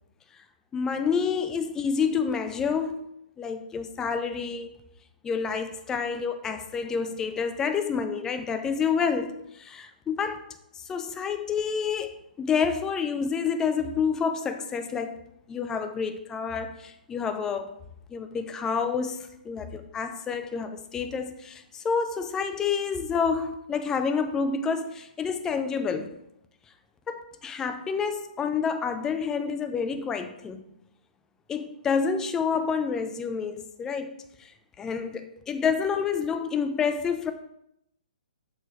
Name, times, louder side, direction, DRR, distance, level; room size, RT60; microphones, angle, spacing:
voice 1, 0.7-3.1 3.4-4.7 5.2-10.4 10.9-12.1 12.4-15.2 15.5-17.7 18.1-26.1 27.1-30.7 31.5-34.1 34.4-34.5 34.8-37.3, left 6 dB, 10° left, 8 dB, 0.4 m, -28 dB
6.5 x 3.3 x 5.0 m, 0.78 s
figure-of-eight pair, 125°, 5 cm